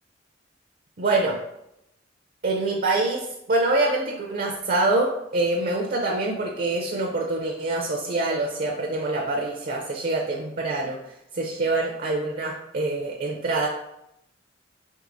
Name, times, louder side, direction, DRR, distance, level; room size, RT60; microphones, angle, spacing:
voice 1, 1.0-1.4 2.4-11.0 11.3-13.7, right 2 dB, 50° right, 0 dB, 0.5 m, -25 dB
4.6 x 3.5 x 2.6 m, 0.83 s
head